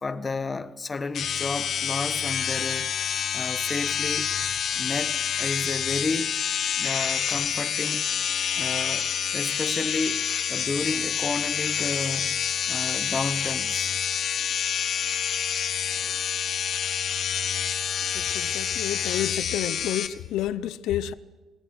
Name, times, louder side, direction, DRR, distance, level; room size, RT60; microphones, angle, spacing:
voice 1, 0.0-2.9 3.3-4.3 4.7-6.3 6.8-8.1 8.5-10.2 10.5-12.4 12.7-13.9 15.9-16.1, left 3 dB, 25° left, 1.2 m, -32 dB
sound 1, 1.1-20.1, left 8 dB, 55° left, 1.3 m, -27 dB
voice 2, 18.1-21.1, left 12 dB, 80° left, 0.7 m, -30 dB
25.5 x 18.5 x 6.3 m
cardioid pair, 120°, 0 cm